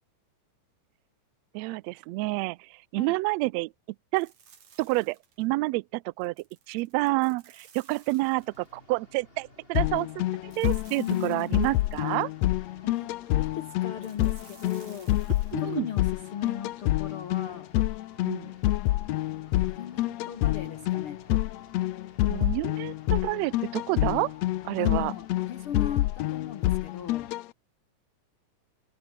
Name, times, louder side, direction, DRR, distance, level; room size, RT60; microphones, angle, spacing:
voice 1, 1.5-3.7 4.1-4.3 4.8-6.3 6.7-10.1 10.4-12.3 15.5-15.9 18.2-18.5 22.3-24.3 24.6-25.1, right 22 dB, 80° right, 1.6 m, -29 dB
sound 1, 4.2-5.5 6.2-8.8 10.5-12.2 14.0-15.7, right 7 dB, 65° right, 4.1 m, -56 dB
sound 2, 8.2-27.3, left 1 dB, 15° left, 6.2 m, -56 dB
sound 3, 9.7-27.4, left 16 dB, 75° left, 1.7 m, -28 dB
voice 2, 11.0-11.6 12.8-15.1 15.6-17.7 18.8-21.2 24.8-27.3, left 9 dB, 55° left, 2.0 m, -38 dB
omnidirectional pair, 3.5 m